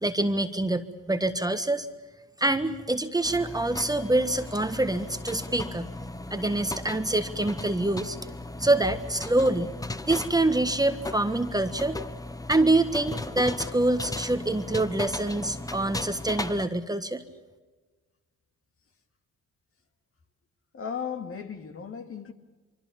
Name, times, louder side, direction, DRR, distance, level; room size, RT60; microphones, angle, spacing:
voice 1, 0.0-1.9 2.4-5.9 6.3-8.2 8.6-9.7 10.0-12.0 12.5-17.2, right 2 dB, 10° right, 1.5 m, -25 dB
sound 1, 3.2-16.7, left 2 dB, 10° left, 1.1 m, -37 dB
voice 2, 20.7-22.3, left 7 dB, 45° left, 2.6 m, -35 dB
25.0 x 24.5 x 7.2 m
cardioid pair, 90°, 30 cm